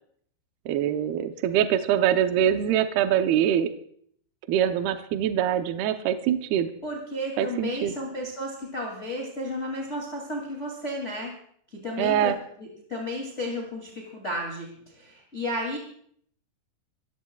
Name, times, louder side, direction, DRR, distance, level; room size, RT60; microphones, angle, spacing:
voice 1, 0.7-3.7 4.5-6.7 7.4-7.9 12.0-12.4, right 10 dB, 75° right, 7 dB, 2.5 m, -24 dB
voice 2, 6.8-11.3 11.7-12.3 12.6-15.8, left 1 dB, 20° left, -2 dB, 2.2 m, -33 dB
26.5 x 15.0 x 2.4 m, 0.64 s
omnidirectional pair, 5.0 m